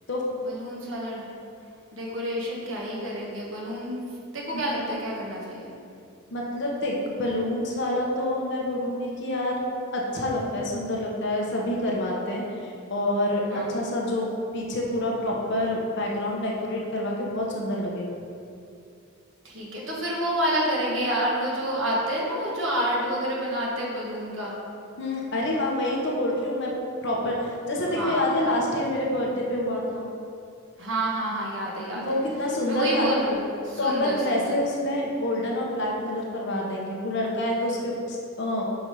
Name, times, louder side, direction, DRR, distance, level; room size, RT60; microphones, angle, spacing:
voice 1, 0.4-1.2 1.9-4.0 4.3-5.7 13.5-13.7 19.4-24.5 27.9-28.3 30.8-32.2 32.6-34.6, right 1 dB, 60° right, -4 dB, 1.5 m, -29 dB
voice 2, 6.3-9.6 9.9-14.3 14.5-18.1 25.0-26.7 27.0-30.1 31.9-33.2 33.8-38.6, left 1 dB, 55° left, -2 dB, 1.0 m, -27 dB
5.4 x 5.3 x 4.7 m, 2.5 s
head